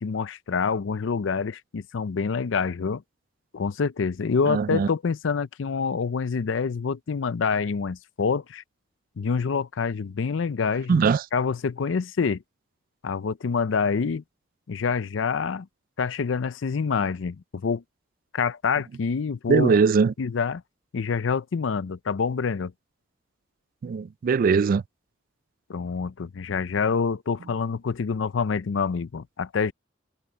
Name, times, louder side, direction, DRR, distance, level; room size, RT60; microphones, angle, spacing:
voice 1, 0.0-3.0 3.5-8.6 9.2-11.1 11.3-12.4 13.0-14.2 14.7-15.7 16.0-17.8 18.3-19.8 20.2-20.6 20.9-22.7 25.7-29.7, left 5 dB, 90° left, 0.5 m, -26 dB
voice 2, 4.5-4.9 10.9-11.2 19.5-20.1 23.8-24.8, right 5 dB, 50° right, 0.3 m, -21 dB
head